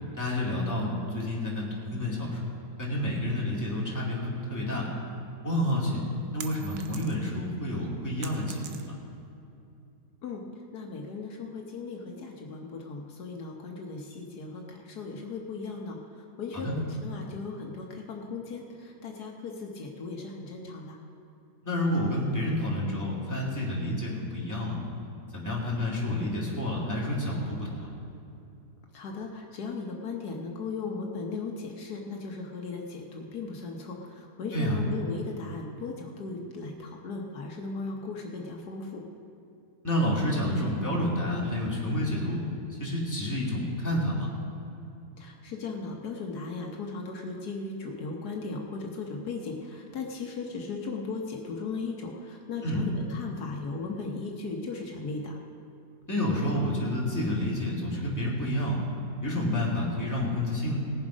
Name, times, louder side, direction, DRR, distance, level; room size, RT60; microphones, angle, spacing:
voice 1, 0.2-2.4 2.8-4.9 5.4-6.0 6.3-8.9 16.5-16.8 21.6-24.8 25.3-27.9 34.5-34.8 39.8-42.4 42.7-44.3 52.6-52.9 56.1-58.8 59.2-60.8, left 1 dB, 10° left, -5 dB, 2.4 m, -29 dB
sound 1, 6.0-7.4 7.8-9.2, right 8 dB, 75° right, 1.3 m, -44 dB
voice 2, 10.7-16.0 16.4-21.0 28.9-39.0 45.2-55.4, left 4 dB, 75° left, 1 dB, 1.6 m, -37 dB
18.5 x 7.3 x 5.1 m, 2.7 s
omnidirectional pair, 1.7 m